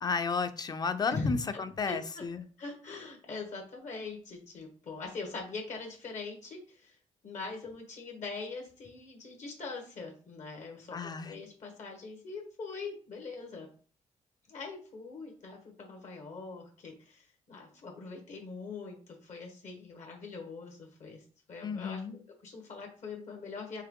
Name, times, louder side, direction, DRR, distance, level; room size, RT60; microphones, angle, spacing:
voice 1, 0.0-2.4 10.9-11.4 21.6-22.1, left 5 dB, 30° left, 11 dB, 0.5 m, -33 dB
voice 2, 1.1-1.6 1.9-2.2 2.6-7.0 7.2-13.7 14.5-23.8, left 3 dB, 65° left, 1 dB, 1.3 m, -42 dB
4.6 x 3.0 x 3.7 m, 0.41 s
cardioid pair, 100°, 13 cm